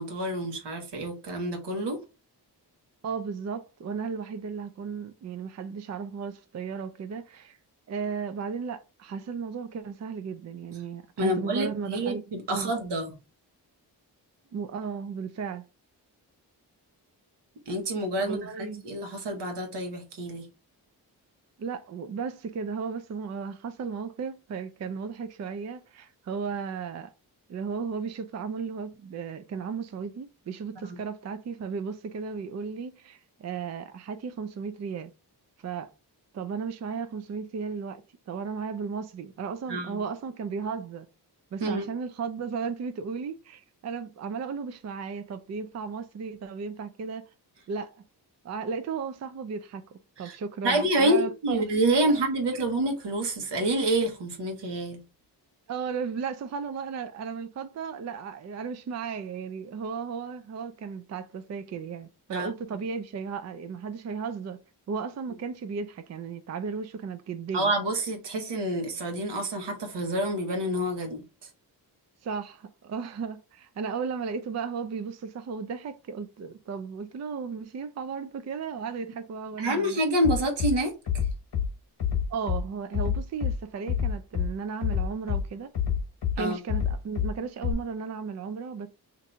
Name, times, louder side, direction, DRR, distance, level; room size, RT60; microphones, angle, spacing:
voice 1, 0.0-2.0 11.2-13.2 17.7-20.5 30.8-31.0 39.7-40.0 41.6-41.8 50.2-50.4 50.6-55.0 62.3-62.5 67.5-71.5 79.6-80.9 86.4-86.6, right 1 dB, 85° right, 1.1 m, -28 dB
voice 2, 3.0-7.6 7.9-12.2 12.5-12.7 14.5-15.6 18.2-18.8 21.6-27.1 27.5-35.1 35.6-35.9 36.3-41.1 41.5-47.2 47.7-48.0 48.4-51.6 55.7-64.6 64.9-67.7 72.2-80.0 82.3-85.7 86.4-88.9, right 5 dB, 40° right, 0.4 m, -35 dB
Bass drum, 80.2-80.7 81.1-81.7 82.0-82.6 82.9-83.5 83.9-84.5 84.8-85.4 85.7-86.4 86.7-87.3 87.6-87.7, left 8 dB, 65° left, 1.0 m, -26 dB
2.7 x 2.6 x 4.3 m
cardioid pair, 80°, 41 cm